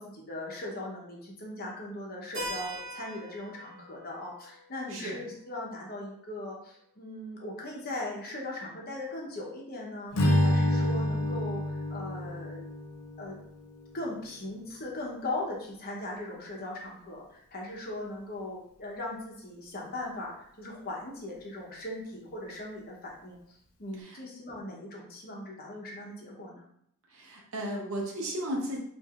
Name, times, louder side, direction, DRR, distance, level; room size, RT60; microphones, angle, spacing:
voice 1, 0.0-12.6 13.2-13.3 13.9-23.4 23.8-26.6, left 1 dB, 45° left, -2 dB, 0.8 m, -39 dB
Keyboard (musical), 2.3-6.8, right 1 dB, 50° right, 1.3 m, -43 dB
Strum, 10.1-14.5, left 1 dB, 85° left, 0.6 m, -29 dB
voice 2, 27.1-28.8, right 1 dB, 65° right, -1 dB, 0.8 m, -34 dB
4.6 x 2.6 x 2.4 m, 0.71 s
head